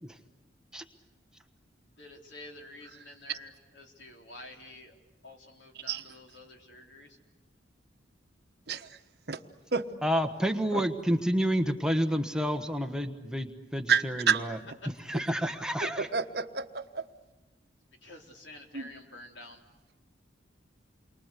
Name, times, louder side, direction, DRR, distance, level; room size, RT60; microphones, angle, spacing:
voice 1, 2.0-7.2 14.8-14.9 18.0-19.6, left 2 dB, 80° left, 2 dB, 3.8 m, -49 dB
voice 2, 10.0-14.6 15.1-16.1, equal, 5° right, 6 dB, 1.2 m, -29 dB
voice 3, 13.9-14.5 15.8-17.0 18.7-18.8, right 6 dB, 60° right, 8 dB, 1.2 m, -29 dB
29.0 x 23.5 x 8.3 m, 1.2 s
head